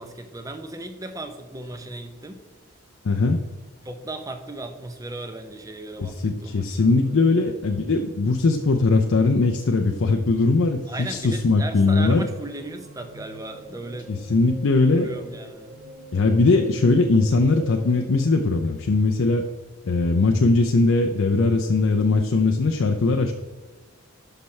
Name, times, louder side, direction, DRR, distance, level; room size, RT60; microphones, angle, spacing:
voice 1, 0.0-2.4 3.8-7.3 10.9-14.6 14.9-15.8, right 1 dB, 15° right, 7 dB, 0.6 m, -36 dB
voice 2, 3.0-3.4 6.0-12.2 14.1-15.1 16.1-19.5 19.8-23.3, left 3 dB, 65° left, 4 dB, 0.5 m, -20 dB
sound 1, 12.3-18.1, equal, 65° right, 0.8 m, -45 dB
11.5 x 5.8 x 3.2 m, 1.3 s
head